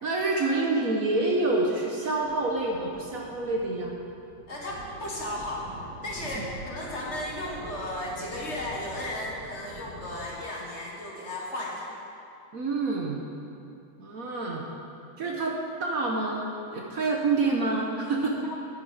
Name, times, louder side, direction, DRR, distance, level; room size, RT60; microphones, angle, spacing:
voice 1, 0.0-3.9 6.2-6.4 12.5-13.2 14.0-14.7 15.2-18.5, right 3 dB, 55° right, -1 dB, 1.3 m, -27 dB
sound 1, 2.2-10.6, right 2 dB, 75° right, 3.1 m, -45 dB
voice 2, 4.5-5.7 6.0-11.9 18.5-18.6, left 1 dB, 40° left, -3 dB, 1.7 m, -35 dB
10.0 x 10.0 x 5.0 m, 2.6 s
omnidirectional pair, 2.0 m